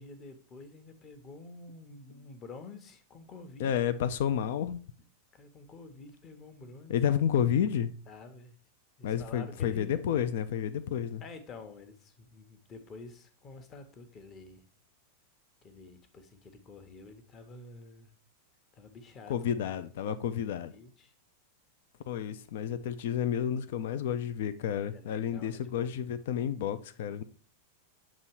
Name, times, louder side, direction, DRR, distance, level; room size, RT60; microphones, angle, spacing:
voice 1, 0.0-3.7 5.3-7.0 8.1-8.6 9.0-9.9 11.2-14.6 15.6-18.1 18.7-19.6 20.7-21.1 24.9-26.1, left 3 dB, 30° left, 0.9 m, -49 dB
voice 2, 3.6-4.8 6.9-7.9 9.0-11.2 19.3-20.7 22.1-27.2, left 9 dB, 55° left, 0.4 m, -30 dB
7.4 x 3.0 x 4.4 m
figure-of-eight pair, 90°, 0 cm